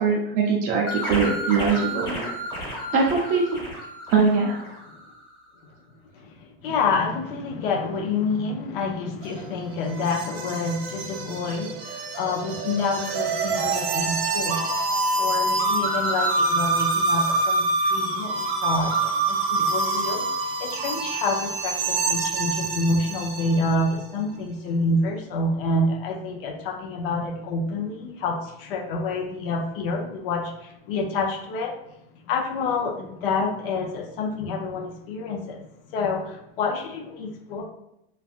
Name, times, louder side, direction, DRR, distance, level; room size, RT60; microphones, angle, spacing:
voice 1, 0.0-2.2 2.9-3.6 4.1-4.6, right 4 dB, 25° right, -3 dB, 0.4 m, -22 dB
sound 1, 0.9-5.2, equal, 15° left, 1.0 m, -32 dB
voice 2, 6.6-14.6 15.2-31.7 32.3-35.6 35.9-37.6, left 3 dB, 60° left, 1 dB, 0.6 m, -28 dB
sound 2, 9.2-23.8, right 3 dB, 85° right, 0.7 m, -26 dB
3.3 x 2.3 x 2.4 m, 0.82 s
supercardioid pair, 155°, 31 cm